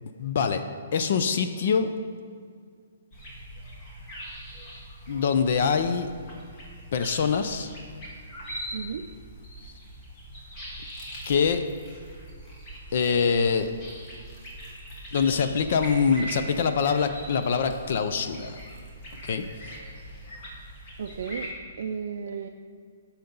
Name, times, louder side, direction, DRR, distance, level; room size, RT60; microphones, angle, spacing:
voice 1, 0.0-0.6 0.9-1.9 5.1-6.1 6.9-7.7 11.3-11.6 12.9-13.7 15.1-18.6 19.2-19.8, left 6 dB, 40° left, 8 dB, 0.4 m, -24 dB
sound 1, 3.1-21.5, right 1 dB, 20° left, 1.4 m, -42 dB
voice 2, 8.7-9.1 21.0-21.5 21.8-22.5, right 6 dB, 55° right, 4 dB, 0.4 m, -33 dB
14.0 x 5.7 x 3.9 m, 2.1 s
hypercardioid pair, 175°, 0 cm